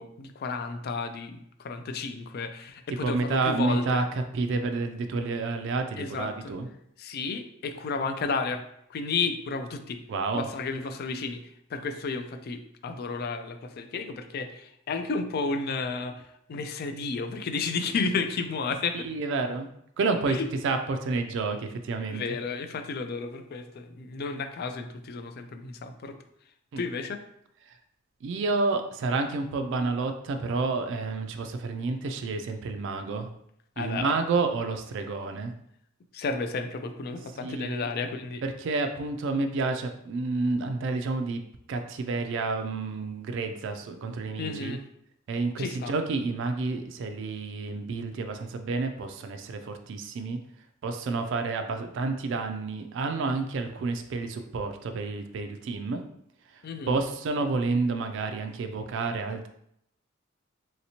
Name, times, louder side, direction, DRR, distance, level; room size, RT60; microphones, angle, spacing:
voice 1, 0.0-4.0 6.0-6.5 7.0-8.6 8.9-10.0 10.3-19.1 20.3-20.5 22.1-26.2 26.4-27.2 33.8-34.2 36.1-38.4 44.4-44.8 45.6-45.9 56.6-57.0, left 4 dB, 50° left, 7 dB, 0.3 m, -32 dB
voice 2, 3.0-4.0 4.3-6.7 10.1-10.5 18.9-19.7 20.0-22.2 26.7-26.8 27.7-27.8 28.2-33.3 33.8-35.5 37.4-37.9 38.4-41.4 41.7-44.8 45.3-50.4 50.8-56.0 56.5-59.5, right 3 dB, 65° right, 6 dB, 0.3 m, -29 dB
3.2 x 2.8 x 2.8 m, 0.74 s
head